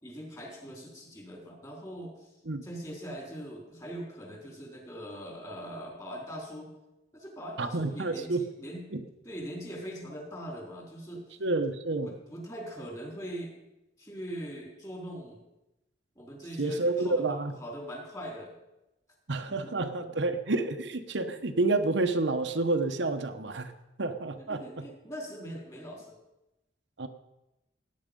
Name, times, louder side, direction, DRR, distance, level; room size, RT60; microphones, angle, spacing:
voice 1, 0.0-2.3 2.6-6.7 7.1-11.3 12.0-13.6 14.0-15.4 16.2-18.5 19.5-19.7 24.4-26.2, equal, 20° left, -1 dB, 3.9 m, -41 dB
voice 2, 7.6-8.4 8.9-9.0 11.4-12.1 16.6-17.5 19.3-23.7 24.0-24.8 27.0-27.1, right 2 dB, 75° right, 6 dB, 1.0 m, -29 dB
17.0 x 9.7 x 5.3 m, 0.94 s
head